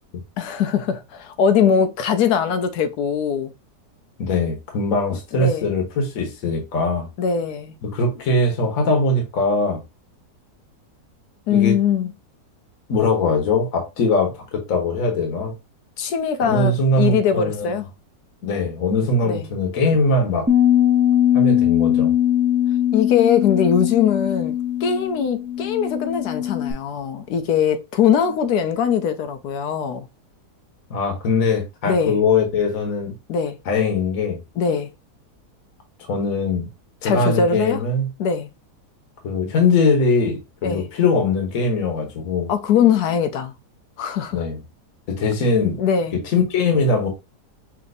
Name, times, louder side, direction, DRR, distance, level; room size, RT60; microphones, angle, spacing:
voice 1, 0.4-3.5 5.3-5.7 7.2-7.8 11.5-12.1 16.0-17.9 19.2-19.5 22.9-24.6 24.8-30.1 31.8-32.2 33.3-33.6 34.6-34.9 37.0-37.8 38.2-38.5 40.6-40.9 42.5-43.5 44.0-44.4 45.8-46.2, left 7 dB, 75° left, 1.2 m, -21 dB
voice 2, 4.2-7.1 7.8-9.8 11.5-11.8 12.9-15.5 16.4-17.8 18.4-20.5 21.3-22.1 30.9-33.1 33.7-34.4 36.0-36.7 37.0-38.1 39.2-42.5 44.3-44.6 45.1-45.8 46.2-47.1, left 3 dB, 60° left, 1.5 m, -21 dB
Bass guitar, 20.5-26.7, left 11 dB, 10° right, 0.8 m, -20 dB
6.0 x 2.8 x 2.6 m
omnidirectional pair, 1.7 m